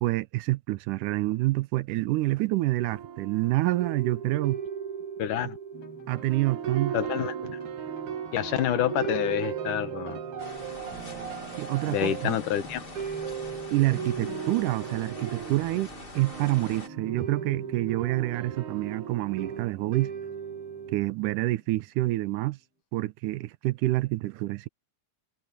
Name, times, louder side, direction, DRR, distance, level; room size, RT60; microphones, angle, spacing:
voice 1, 0.0-4.6 6.1-7.0 11.6-12.4 13.7-15.9 16.2-20.1 20.9-22.6 22.9-24.7, right 18 dB, 90° right, 2.2 m, -27 dB
sound 1, 2.9-21.0, right 8 dB, 70° right, 3.1 m, -37 dB
voice 2, 5.2-5.6 6.9-7.6 8.3-10.2 11.9-12.8 14.3-14.4, left 11 dB, 80° left, 2.8 m, -28 dB
sound 2, 5.7-22.6, left 1 dB, 45° left, 8.0 m, -49 dB
sound 3, 10.4-16.9, left 3 dB, 20° left, 1.7 m, -44 dB
omnidirectional pair, 3.6 m